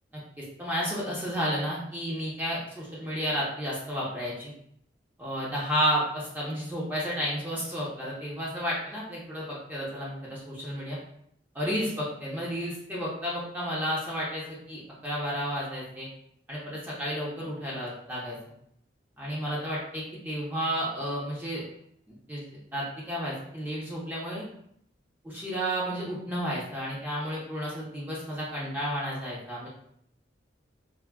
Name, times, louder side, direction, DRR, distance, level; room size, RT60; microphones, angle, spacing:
voice 1, 0.4-4.5 5.2-11.0 11.5-16.1 16.5-18.4 19.2-21.6 22.3-22.4 22.7-24.4 25.2-29.7, equal, 10° right, -6 dB, 0.6 m, -32 dB
3.5 x 2.1 x 2.2 m, 0.69 s
head